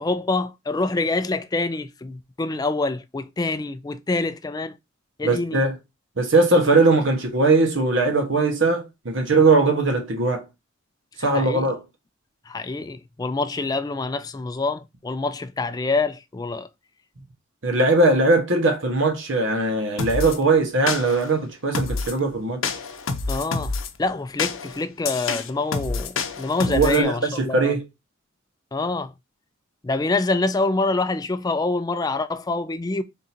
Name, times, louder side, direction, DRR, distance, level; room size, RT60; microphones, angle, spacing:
voice 1, 0.0-4.8 5.2-5.6 11.2-11.7 12.5-16.7 23.3-23.7 24.0-27.8 28.7-29.1 29.8-33.0, left 3 dB, 20° left, 0.3 m, -26 dB
voice 2, 5.2-5.8 6.2-10.4 11.2-11.8 17.6-22.7 26.7-27.9, right 3 dB, 65° right, 1.1 m, -20 dB
sound 1, 20.0-20.4 20.9-21.3 21.7-22.2 22.6-23.9 24.4-27.0, left 4 dB, 80° left, 0.6 m, -28 dB
3.6 x 2.6 x 4.3 m
head